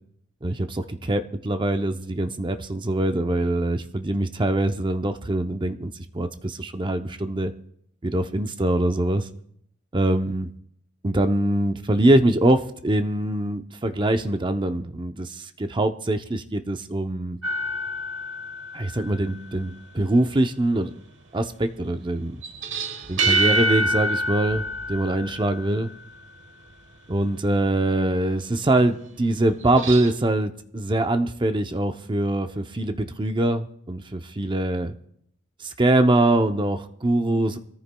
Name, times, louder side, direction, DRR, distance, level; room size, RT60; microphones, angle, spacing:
voice 1, 0.4-7.5 8.0-9.3 9.9-10.5 11.0-17.4 18.7-20.9 21.3-22.4 23.1-25.9 27.1-34.9 35.6-37.6, right 1 dB, 25° right, 8 dB, 0.6 m, -23 dB
sound 1, 17.4-19.4 22.4-26.1 29.6-30.1, right 1 dB, 65° right, 1.3 m, -26 dB
25.0 x 14.0 x 2.2 m, 0.73 s
head